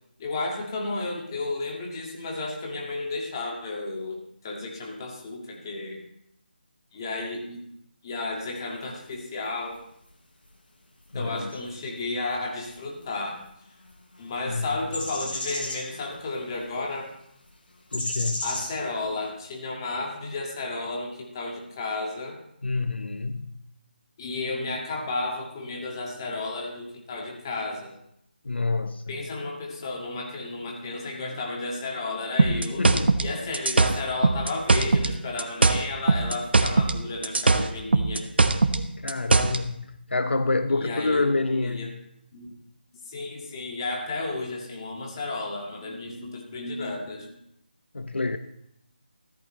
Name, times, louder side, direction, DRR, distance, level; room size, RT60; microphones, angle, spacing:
voice 1, 0.2-6.0 6.9-7.6 8.0-9.8 11.1-13.4 14.2-17.1 18.4-22.4 24.2-27.9 29.1-32.8 33.2-38.3 40.7-41.9 42.3-42.5 43.1-47.3, left 3 dB, 25° left, -1 dB, 2.0 m, -33 dB
sound 1, 8.8-9.1 9.4-9.7 10.0-10.1 11.0-11.1 11.4-11.5 12.6-12.7 13.0-13.1 13.4-13.5 13.9-14.4 14.8-16.6 16.9-17.0 17.9-19.3, left 1 dB, 60° left, 5.1 m, -34 dB
voice 2, 11.1-11.5 14.5-14.7 17.9-18.4 22.6-23.6 28.4-29.2 32.8-33.2 39.0-42.0 47.9-48.4, left 3 dB, 85° left, 10 dB, 0.8 m, -27 dB
sound 2, 32.4-35.1 35.4-37.0 37.2-39.6, right 3 dB, 70° right, 1.0 m, -20 dB
14.0 x 13.0 x 3.2 m, 0.76 s
figure-of-eight pair, 170°, 6 cm